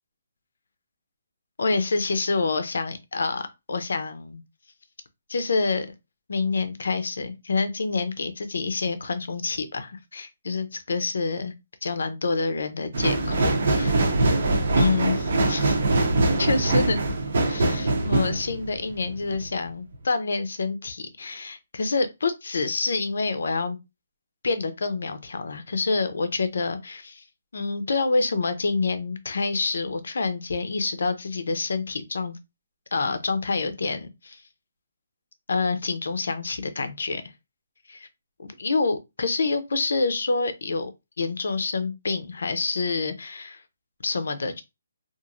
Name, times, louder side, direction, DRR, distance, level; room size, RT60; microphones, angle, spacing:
voice 1, 1.6-4.4 5.3-5.9 6.3-11.5 11.8-14.1 14.8-15.8 16.4-17.0 17.4-23.8 24.4-27.2 27.5-32.4 32.9-34.4 35.5-37.2 37.9-38.1 38.4-40.9 41.2-43.6 44.0-44.6, left 3 dB, 75° left, 0.5 m, -27 dB
sound 1, 12.9-19.5 19.9-20.0, right 2 dB, 50° right, 0.6 m, -23 dB
3.0 x 2.5 x 2.4 m
hypercardioid pair, 170°, 0 cm